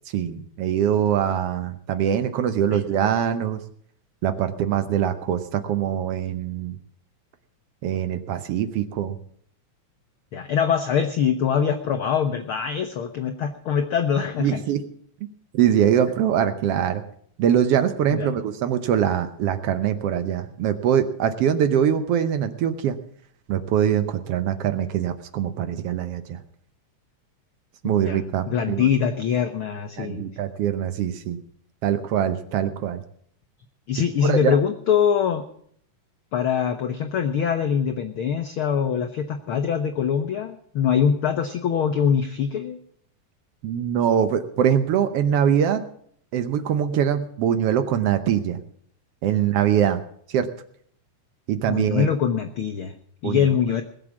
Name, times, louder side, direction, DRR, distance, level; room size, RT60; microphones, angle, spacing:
voice 1, 0.1-3.6 4.2-6.7 7.8-9.2 14.4-14.8 15.5-17.0 17.4-23.0 23.5-26.4 27.8-28.9 30.0-31.4 31.8-33.0 34.2-34.6 43.6-45.8 46.3-48.6 49.2-50.0 50.3-50.5 51.5-52.1 53.2-53.5, right 9 dB, 70° right, 9 dB, 1.5 m, -23 dB
voice 2, 10.3-14.6 18.1-18.3 27.8-30.3 33.9-35.4 36.3-42.8 51.7-52.9 53.2-53.8, left 7 dB, 75° left, 6 dB, 1.2 m, -23 dB
20.5 x 7.5 x 7.2 m, 0.64 s
omnidirectional pair, 3.5 m